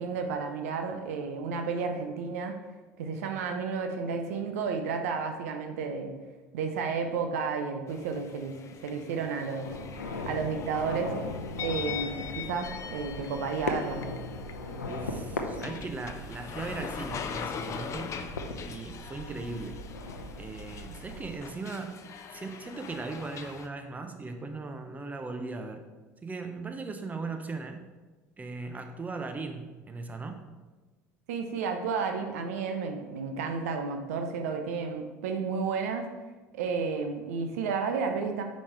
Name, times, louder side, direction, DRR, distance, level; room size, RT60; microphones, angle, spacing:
voice 1, 0.0-2.6 3.0-6.1 6.5-8.6 8.8-9.7 10.3-11.2 11.6-14.0 31.3-36.1 36.5-38.4, right 5 dB, 70° right, 5 dB, 0.6 m, -32 dB
sound 1, 7.9-23.7, left 7 dB, 35° left, 0.5 m, -42 dB
sound 2, 9.6-21.4, left 2 dB, 85° left, 0.7 m, -38 dB
voice 2, 14.8-18.2 18.6-19.8 20.4-22.0 22.3-25.8 26.2-27.9 28.4-30.4, right 3 dB, 20° right, 6 dB, 0.7 m, -38 dB
5.2 x 5.1 x 4.4 m, 1.2 s
hypercardioid pair, 70°, 8 cm